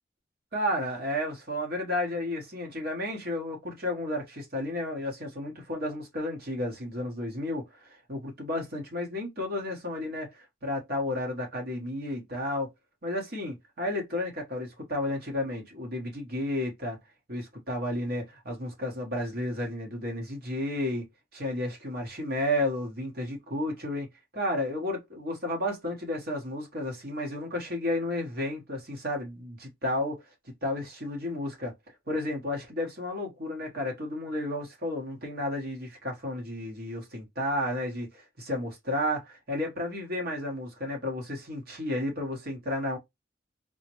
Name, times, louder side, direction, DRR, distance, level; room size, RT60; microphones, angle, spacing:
voice 1, 0.5-12.7 13.0-17.0 17.3-21.1 21.3-24.1 24.3-30.2 30.6-31.7 32.1-43.0, left 1 dB, 60° right, 1.2 m, -32 dB
4.0 x 2.0 x 3.0 m
head